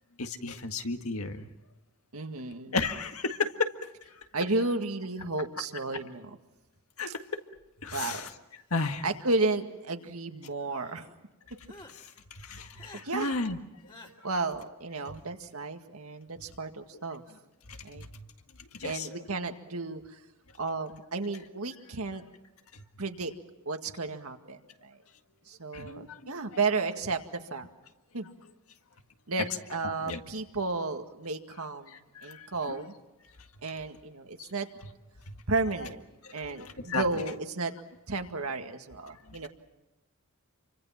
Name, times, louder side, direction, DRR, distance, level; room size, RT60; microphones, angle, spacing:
voice 1, 0.2-1.5 2.7-4.2 7.0-7.4 7.8-8.3 8.7-9.1 11.9-13.6 13.8-13.9 17.7-18.3 18.7-19.2 22.7-22.8 25.7-26.3 30.1-30.2 31.9-32.8 34.4-34.5 35.3-35.4 36.2-37.2 39.3-39.5, left 3 dB, 75° left, 6 dB, 1.8 m, -34 dB
voice 2, 2.1-2.8 4.3-6.4 7.9-8.2 9.0-11.1 13.0-13.3 14.2-17.2 17.8-18.1 18.8-20.2 20.6-22.2 23.0-23.3 23.7-25.0 25.5-27.7 28.1-28.3 29.3-32.9 33.6-34.7 35.5-36.0 36.3-37.7 38.1-39.5, right 3 dB, 80° right, 5 dB, 2.0 m, -33 dB
sound 1, 9.2-10.1 10.6-11.1 11.6-11.9 12.7-13.0 13.9-14.1, left 2 dB, 20° left, 2.5 m, -52 dB
29.5 x 25.0 x 5.8 m, 1.0 s
head